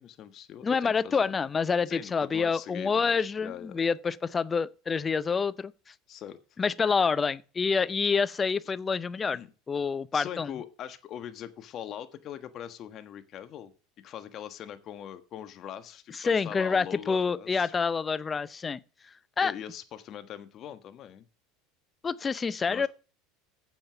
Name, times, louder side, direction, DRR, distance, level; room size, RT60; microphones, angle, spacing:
voice 1, 0.0-1.3 1.9-3.9 6.1-6.4 9.3-9.5 10.1-13.7 14.0-17.7 19.4-21.2 22.7-22.9, left 10 dB, 45° left, 1.4 m, -42 dB
voice 2, 0.6-5.7 6.6-9.4 9.7-10.5 16.2-18.8 19.4-19.5 22.0-22.9, left 5 dB, 25° left, 0.6 m, -27 dB
9.4 x 7.2 x 6.9 m
supercardioid pair, 105°, 0 cm